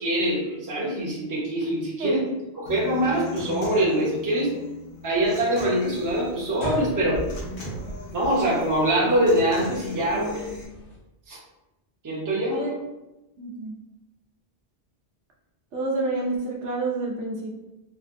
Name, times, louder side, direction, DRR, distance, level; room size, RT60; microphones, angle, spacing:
voice 1, 0.0-2.2 2.6-4.5 5.0-7.2 8.1-10.4 11.3-11.4 12.0-12.6, right 1 dB, 20° right, -5 dB, 0.6 m, -24 dB
Human voice / Acoustic guitar, 2.7-10.6, left 2 dB, 60° left, 0.9 m, -39 dB
sound 1, 5.8-11.0, right 1 dB, 75° left, 1.2 m, -39 dB
voice 2, 13.4-13.8 15.7-17.5, right 3 dB, 85° right, -1 dB, 0.9 m, -29 dB
3.5 x 2.1 x 2.5 m, 0.99 s
omnidirectional pair, 1.1 m